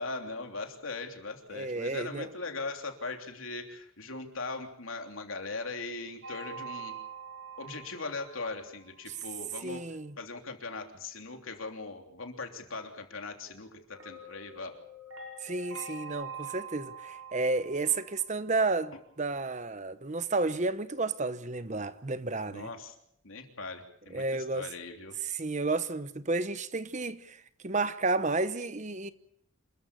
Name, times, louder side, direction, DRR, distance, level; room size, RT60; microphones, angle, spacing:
voice 1, 0.0-7.0 7.6-9.8 10.2-14.7 22.5-22.9 23.2-25.1, left 3 dB, 80° left, 3.2 m, -40 dB
voice 2, 1.5-2.3 9.6-10.2 15.4-22.7 24.1-24.7 25.2-29.1, right 3 dB, 35° right, 0.9 m, -31 dB
sound 1, 6.2-9.2 13.9-18.9, right 4 dB, 85° right, 4.9 m, -45 dB
27.5 x 14.0 x 8.3 m
head